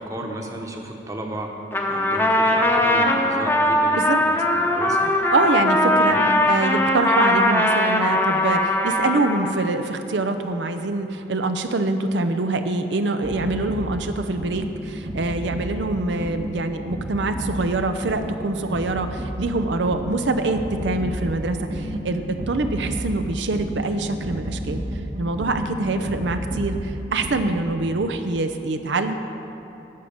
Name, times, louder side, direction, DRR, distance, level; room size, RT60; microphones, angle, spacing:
voice 1, 0.0-1.5 1.9-5.1 6.0-6.4, right 1 dB, 15° right, 2 dB, 1.0 m, -33 dB
Trumpet, 1.7-9.6, left 1 dB, 10° left, 0.8 m, -20 dB
voice 2, 5.3-6.2 6.5-24.8 25.2-29.1, right 2 dB, 80° right, 7 dB, 0.6 m, -25 dB
sound 1, 13.2-27.9, right 1 dB, 35° right, 0.9 m, -32 dB
12.0 x 6.5 x 8.7 m, 2.9 s
head